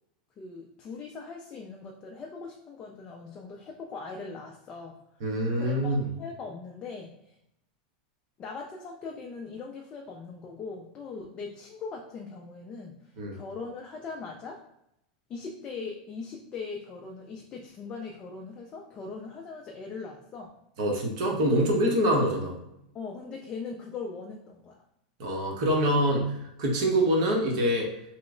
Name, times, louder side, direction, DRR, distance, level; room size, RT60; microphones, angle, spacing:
voice 1, 0.4-7.4 8.4-13.0 13.3-14.6 15.3-20.6 22.9-24.8, left 4 dB, 20° left, 0 dB, 0.3 m, -40 dB
voice 2, 5.2-6.1 13.2-13.3 20.8-22.6 25.2-26.3 26.6-27.9, equal, 50° right, 0 dB, 0.9 m, -25 dB
3.0 x 2.0 x 3.6 m, 0.81 s
supercardioid pair, 160°, 4 cm